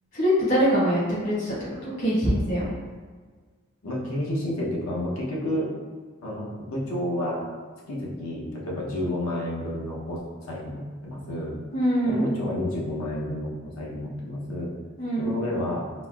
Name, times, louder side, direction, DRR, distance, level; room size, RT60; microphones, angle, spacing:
voice 1, 0.1-1.5 1.8-2.6 11.7-12.3 15.0-15.4, equal, 60° left, -9 dB, 1.5 m, -23 dB
voice 2, 3.8-5.7 6.2-7.5 7.9-11.6 12.0-14.8 15.2-15.9, left 1 dB, 85° left, -4 dB, 0.7 m, -30 dB
4.0 x 2.0 x 2.2 m, 1.5 s
head